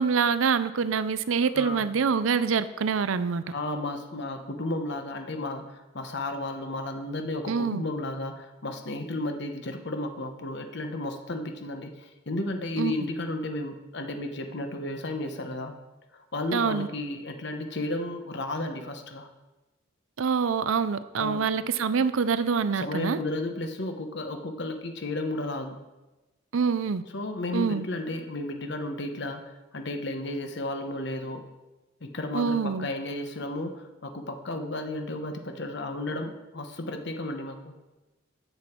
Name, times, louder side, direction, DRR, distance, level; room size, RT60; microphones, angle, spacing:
voice 1, 0.0-3.4 7.5-7.8 12.8-12.9 16.5-16.9 20.2-23.2 26.5-27.0 27.5-27.8 32.3-32.9, right 5 dB, 80° right, 14 dB, 0.5 m, -25 dB
voice 2, 1.5-1.9 3.5-15.7 16.1-19.3 21.2-21.4 22.7-25.8 27.1-31.4 32.0-37.8, left 2 dB, 60° left, 5 dB, 1.0 m, -33 dB
11.0 x 7.9 x 4.5 m, 1.1 s
head